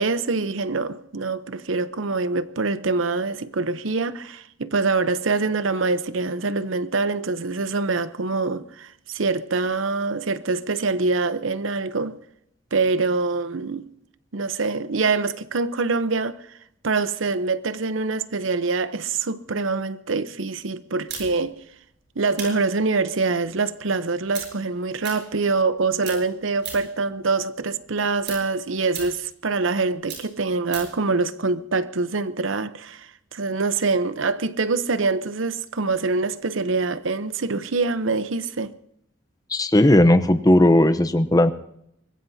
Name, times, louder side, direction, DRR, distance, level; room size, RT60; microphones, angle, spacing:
voice 1, 0.0-12.1 12.7-13.9 14.3-16.5 16.8-21.6 22.2-38.7, right 3 dB, 85° right, 0.8 m, -25 dB
sound 1, 21.1-25.7 26.0-27.0 27.4-31.0, right 6 dB, 60° right, 7.8 m, -38 dB
voice 2, 39.5-41.5, left 1 dB, 20° left, 0.8 m, -16 dB
24.5 x 21.5 x 2.8 m
head